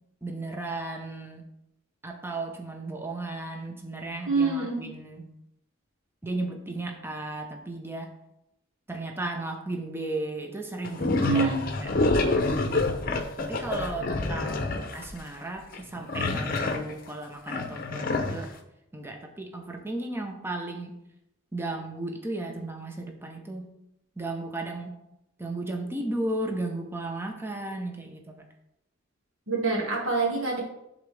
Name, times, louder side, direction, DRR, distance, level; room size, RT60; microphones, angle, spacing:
voice 1, 0.2-1.5 2.0-5.3 6.2-8.1 8.9-11.9 13.4-18.6 18.9-21.0 21.5-23.7 24.2-25.0 25.4-28.5, right 2 dB, 10° right, 3 dB, 0.8 m, -35 dB
voice 2, 4.3-4.8 11.3-11.6 29.5-30.6, right 4 dB, 80° right, -1 dB, 1.9 m, -25 dB
sound 1, 10.8-15.0 15.7-16.9 17.5-18.4, left 2 dB, 45° left, 0.7 m, -27 dB
10.5 x 4.0 x 3.3 m, 0.84 s
head